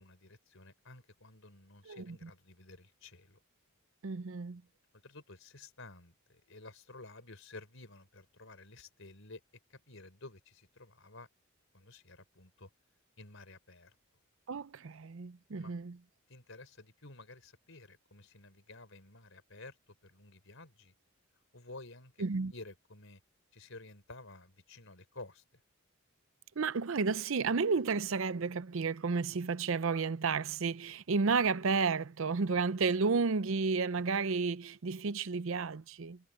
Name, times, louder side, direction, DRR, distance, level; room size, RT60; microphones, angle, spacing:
voice 1, 0.0-3.4 5.0-9.4 9.7-11.3 11.7-12.7 13.2-14.0 15.5-15.7 16.3-19.8 20.0-20.9 21.5-22.2 22.5-23.2 23.5-25.6, left 2 dB, 65° left, 4.7 m, -52 dB
voice 2, 1.9-2.3 4.0-4.6 14.5-16.0 22.2-22.5 26.6-36.2, right 4 dB, 65° right, 0.6 m, -32 dB
head